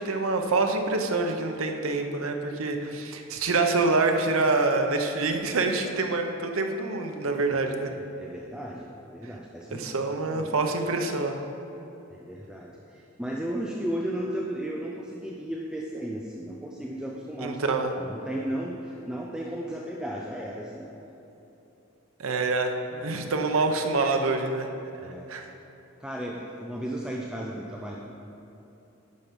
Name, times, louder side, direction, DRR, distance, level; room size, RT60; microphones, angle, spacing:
voice 1, 0.0-7.9 9.7-11.4 17.4-17.9 22.2-24.7 25.3-25.5, right 3 dB, 80° right, 4 dB, 0.8 m, -26 dB
voice 2, 7.6-9.9 10.2-10.5 12.1-21.0 25.0-25.5 26.0-28.0, right 1 dB, 5° right, -2 dB, 0.5 m, -35 dB
10.5 x 5.6 x 5.2 m, 3.0 s
head